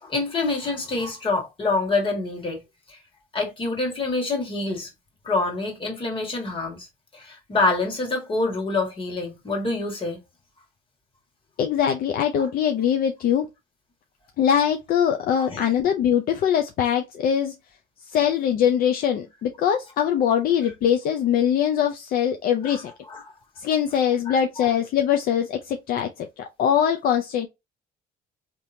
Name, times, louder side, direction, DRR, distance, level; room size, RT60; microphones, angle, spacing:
voice 1, 0.0-2.6 2.9-3.0 3.3-4.9 5.2-6.9 7.1-10.2 15.4-15.7 22.6-22.8 23.1-23.2 24.3-24.7, left 3 dB, 30° left, 1.7 m, -26 dB
voice 2, 11.6-13.5 14.4-17.5 18.1-22.9 23.6-27.5, left 9 dB, 60° left, 0.5 m, -22 dB
3.4 x 2.9 x 2.6 m
cardioid pair, 110°, 17 cm